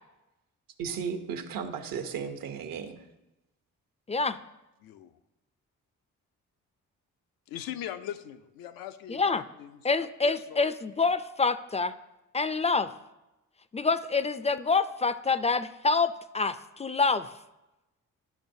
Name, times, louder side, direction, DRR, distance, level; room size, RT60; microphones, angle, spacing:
voice 1, 0.8-3.1, right 6 dB, 75° right, 7 dB, 0.9 m, -35 dB
voice 2, 4.8-5.2 7.5-10.7, left 11 dB, 80° left, 10 dB, 0.5 m, -41 dB
voice 3, 9.1-9.4 9.8-11.9 12.3-12.9 13.7-17.3, left 4 dB, 20° left, 13 dB, 0.3 m, -26 dB
11.0 x 6.0 x 2.7 m, 0.99 s
supercardioid pair, 50°, 35 cm